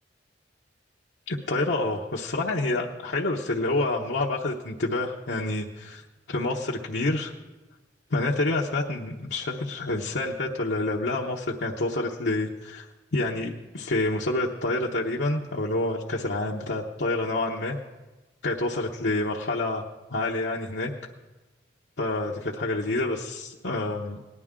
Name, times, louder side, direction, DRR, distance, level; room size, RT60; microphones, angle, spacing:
voice 1, 1.3-6.0 6.3-7.3 8.1-12.8 13.1-17.8 18.4-19.8 20.1-20.9 22.0-24.2, left 2 dB, 75° left, -2 dB, 1.0 m, -28 dB
19.0 x 11.0 x 3.7 m, 1.1 s
head